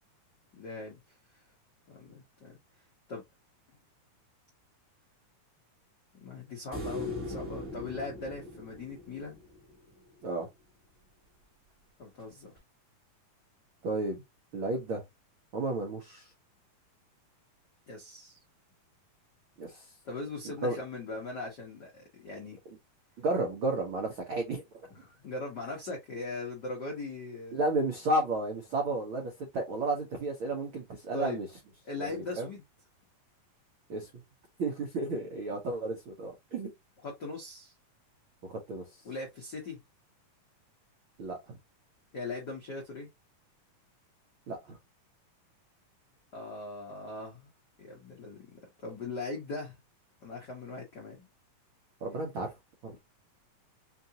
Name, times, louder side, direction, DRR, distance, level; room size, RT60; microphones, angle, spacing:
voice 1, 0.5-1.0 1.9-2.6 3.1-3.2 6.2-9.4 12.0-12.5 17.9-18.4 20.0-22.6 24.9-27.6 31.1-31.4 31.8-32.6 37.0-37.7 39.0-39.8 42.1-43.1 46.3-47.5 47.8-48.5 48.8-49.7 50.2-51.3, left 3 dB, 75° left, 0.9 m, -40 dB
sound 1, 6.7-10.0 12.6-12.7, left 2 dB, 30° right, 1.3 m, -39 dB
voice 2, 13.8-14.2 14.5-15.0 15.5-16.3 19.6-19.8 20.4-20.8 23.2-24.6 27.5-31.5 32.0-32.5 33.9-34.1 34.6-36.7 38.4-38.8 41.2-41.4 44.5-44.8 52.0-52.5 52.8-53.0, right 2 dB, 85° right, 1.1 m, -32 dB
5.1 x 2.5 x 2.8 m
omnidirectional pair, 3.9 m